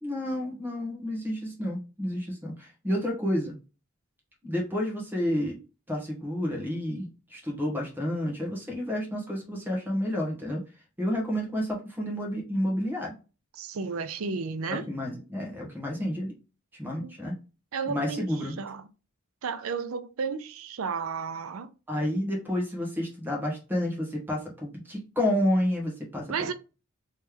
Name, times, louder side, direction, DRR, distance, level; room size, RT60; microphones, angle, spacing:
voice 1, 0.0-3.6 4.4-5.6 5.9-10.6 11.0-13.1 14.7-16.3 16.8-17.3 17.9-18.6 21.9-26.5, left 1 dB, 10° right, 1.2 m, -30 dB
voice 2, 13.6-14.8 17.0-17.2 17.7-18.2 18.6-18.9 19.4-21.7 26.3-26.5, right 5 dB, 75° right, 0.5 m, -33 dB
3.2 x 3.1 x 3.4 m
head